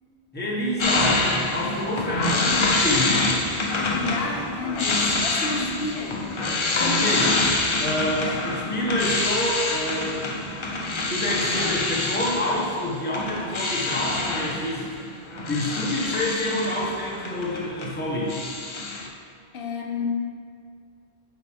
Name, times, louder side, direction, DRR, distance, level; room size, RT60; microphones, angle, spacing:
voice 1, 0.3-3.3 6.8-7.3 7.8-10.3 10.6-10.8 11.1-14.8 15.5-18.4, left 1 dB, 10° left, -4 dB, 0.9 m, -28 dB
sound 1, 0.8-18.0 18.3-19.1, left 2 dB, 40° left, 0.4 m, -26 dB
voice 2, 3.9-7.5 8.3-8.4 19.5-20.1, left 4 dB, 60° left, 1 dB, 0.9 m, -32 dB
8.0 x 4.0 x 3.4 m, 2.2 s
omnidirectional pair, 1.1 m